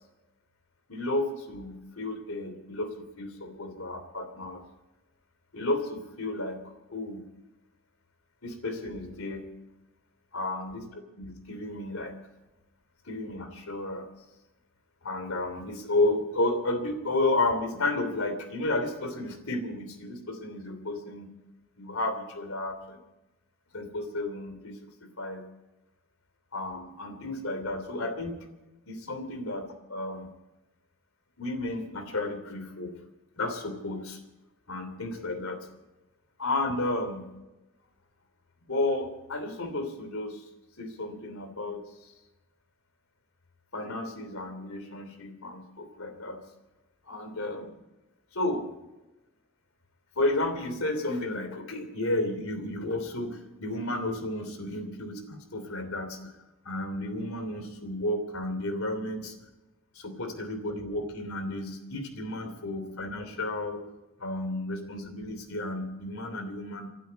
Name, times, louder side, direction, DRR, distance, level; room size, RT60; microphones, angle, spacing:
voice 1, 0.9-4.6 5.5-6.6 6.9-7.2 8.4-9.5 10.3-10.8 11.2-12.1 13.1-14.1 15.0-21.3 21.8-23.0 23.7-25.4 26.5-28.4 28.9-29.6 29.9-30.3 31.4-32.9 33.4-34.2 34.7-35.7 36.4-37.3 38.7-40.4 40.8-41.8 43.7-46.4 47.1-47.6 48.3-48.6 50.1-56.3 56.6-59.3 59.9-63.8 64.2-66.9, left 2 dB, 80° left, 8 dB, 3.0 m, -32 dB
27.5 x 12.0 x 4.1 m, 1.0 s
head